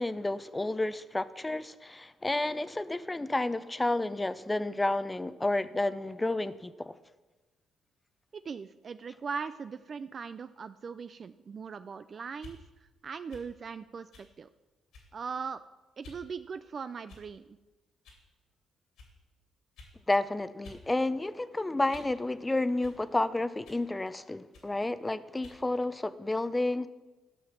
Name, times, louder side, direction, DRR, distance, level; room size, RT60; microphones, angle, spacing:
voice 1, 0.0-6.9 20.1-26.9, left 2 dB, 15° left, 14 dB, 0.6 m, -31 dB
voice 2, 8.3-14.5 15.1-15.6 16.0-17.6, right 5 dB, 45° right, 12 dB, 0.3 m, -40 dB
sound 1, 12.3-12.6 13.3-13.5 14.1-14.3 14.9-15.2 16.0-16.2 17.1-17.5 18.0-18.2 19.0-19.1 19.8-20.0 20.6-20.8 21.2-22.2 22.8-23.0 23.6-23.9 24.5-24.7 25.4-25.6, left 3 dB, 80° left, 2.8 m, -52 dB
12.5 x 5.8 x 7.2 m, 1.2 s
cardioid pair, 90°, 0 cm